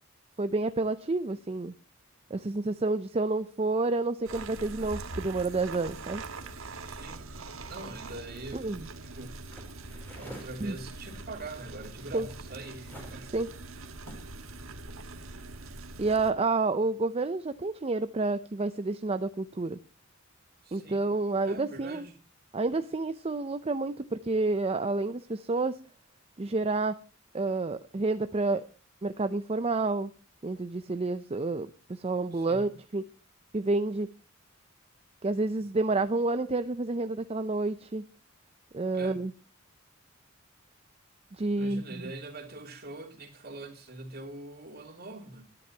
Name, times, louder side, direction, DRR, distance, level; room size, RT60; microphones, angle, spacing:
voice 1, 0.4-1.7 2.3-6.2 8.5-8.8 10.6-10.7 12.1-12.2 13.3-13.5 16.0-19.8 20.7-22.0 22.5-25.8 26.4-27.0 27.3-28.6 29.0-30.1 30.4-33.0 33.5-34.1 35.2-38.1 38.7-39.3 41.4-41.8, right 3 dB, 30° right, 0.5 m, -29 dB
sound 1, 4.2-16.3, right 3 dB, 75° right, 1.4 m, -43 dB
voice 2, 6.8-7.3 7.7-9.5 10.1-13.4 20.6-21.1 21.4-22.2 32.3-32.7 38.9-39.2 41.5-45.5, right 2 dB, 50° right, 2.9 m, -43 dB
sound 2, 8.3-10.5 10.8-14.4 14.8-15.5, equal, 10° left, 4.9 m, -51 dB
19.5 x 11.0 x 2.8 m
head